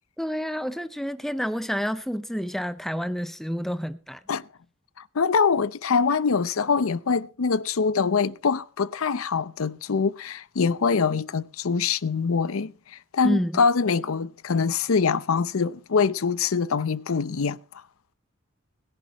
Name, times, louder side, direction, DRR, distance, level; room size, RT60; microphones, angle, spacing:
voice 1, 0.2-4.2 13.2-13.6, equal, ahead, 0.5 m, -29 dB
voice 2, 5.0-17.6, left 5 dB, 90° left, 0.6 m, -24 dB
21.0 x 10.5 x 3.0 m
head